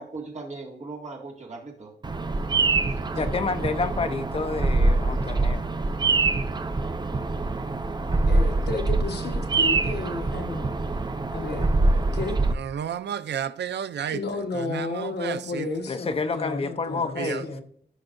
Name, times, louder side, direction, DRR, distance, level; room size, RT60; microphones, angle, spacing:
voice 1, 0.0-1.9 2.9-3.3, right 3 dB, 40° right, 1.9 m, -39 dB
Bird vocalization bird call bird song, 2.0-12.5, right 3 dB, 25° right, 0.5 m, -24 dB
voice 2, 3.1-5.6 15.9-17.6, left 4 dB, 30° left, 0.6 m, -29 dB
voice 3, 8.3-10.8 11.3-11.7 12.1-12.4 14.1-17.6, left 3 dB, 65° left, 1.2 m, -32 dB
voice 4, 12.6-14.2 14.5-15.6 17.2-17.4, right 9 dB, 75° right, 0.4 m, -31 dB
15.0 x 5.4 x 2.6 m
wide cardioid pair, 165°, 18 cm